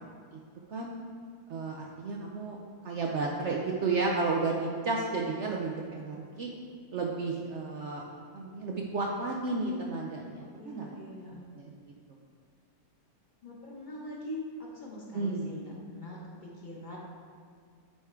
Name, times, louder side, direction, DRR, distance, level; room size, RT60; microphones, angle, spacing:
voice 1, 1.5-2.6 2.8-6.5 6.9-8.0 8.3-10.9 11.3-11.7 15.1-15.5, right 3 dB, 65° right, -1 dB, 0.7 m, -32 dB
voice 2, 10.6-11.5 13.4-17.0, left 1 dB, 35° left, -4 dB, 1.0 m, -43 dB
8.7 x 3.6 x 4.4 m, 2.1 s
omnidirectional pair, 1.6 m